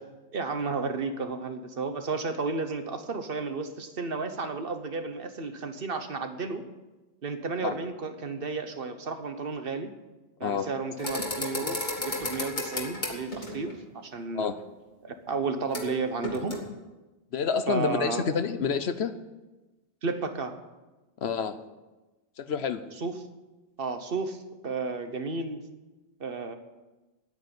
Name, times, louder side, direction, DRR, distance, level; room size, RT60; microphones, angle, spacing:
voice 1, 0.3-6.6 7.2-9.9 10.4-14.5 15.0-16.6 17.7-18.2 20.0-20.6 23.0-23.2 23.8-25.6 26.2-26.6, right 4 dB, 60° right, 7 dB, 1.3 m, -32 dB
sound 1, 11.0-13.7 15.7-15.9 16.2-16.6, left 2 dB, 45° left, 2.3 m, -33 dB
voice 2, 17.3-19.1 21.2-21.6 22.4-22.8, left 6 dB, 75° left, 11 dB, 1.1 m, -28 dB
9.5 x 9.5 x 9.7 m, 1.1 s
omnidirectional pair, 1.1 m